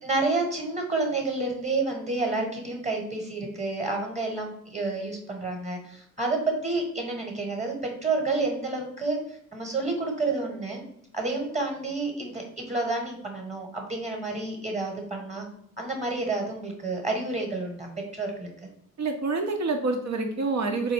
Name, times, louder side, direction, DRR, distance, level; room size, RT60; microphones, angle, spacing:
voice 1, 0.0-9.2 9.5-10.8 11.1-15.4 15.8-17.9 18.1-18.5, right 3 dB, 20° right, 1 dB, 1.3 m, -29 dB
voice 2, 19.0-20.9, right 3 dB, 45° right, 4 dB, 0.9 m, -27 dB
3.9 x 2.2 x 3.5 m, 0.71 s
supercardioid pair, 50°, 38 cm